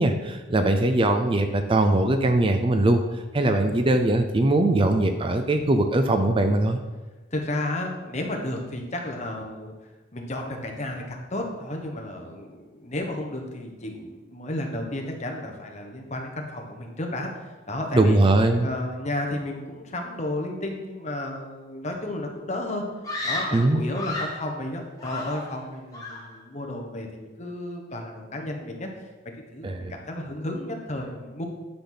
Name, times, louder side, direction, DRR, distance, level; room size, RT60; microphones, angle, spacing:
voice 1, 0.0-3.0 3.3-6.8 17.9-18.7 23.5-23.8 29.6-29.9, right 2 dB, 25° right, 6 dB, 0.4 m, -21 dB
voice 2, 7.3-9.7 10.1-17.3 17.7-18.2 18.6-22.8 23.2-28.9 29.5-31.4, left 1 dB, 35° left, 2 dB, 1.2 m, -32 dB
Screaming, 23.0-24.5 25.0-25.7 25.9-26.4, left 2 dB, 20° left, 1.5 m, -32 dB
10.0 x 5.9 x 4.0 m, 1.2 s
head